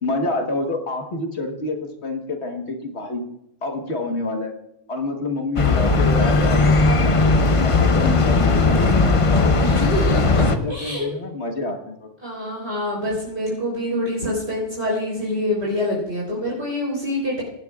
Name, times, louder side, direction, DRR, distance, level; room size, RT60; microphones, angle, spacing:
voice 1, 0.0-3.2 3.6-4.5 4.9-9.7 10.3-12.1, left 2 dB, 60° left, 3 dB, 1.7 m, -28 dB
sound 1, 5.6-10.6, left 3 dB, 35° left, 0.6 m, -17 dB
voice 2, 9.5-11.1 12.2-17.4, left 1 dB, 55° right, -5 dB, 3.9 m, -26 dB
18.5 x 11.0 x 2.4 m, 0.81 s
omnidirectional pair, 1.3 m